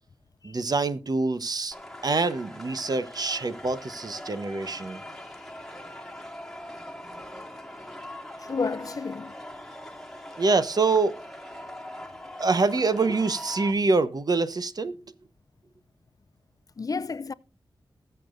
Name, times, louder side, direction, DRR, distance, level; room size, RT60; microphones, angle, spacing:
voice 1, 0.4-1.7 2.0-5.0 10.4-11.1 12.4-14.9, right 3 dB, 50° right, 1.0 m, -25 dB
sound 1, 1.7-13.7, left 1 dB, 5° left, 2.3 m, -42 dB
voice 2, 8.4-9.4 16.8-17.3, left 4 dB, 45° left, 0.4 m, -31 dB
20.5 x 6.9 x 2.6 m
wide cardioid pair, 70°, 8 cm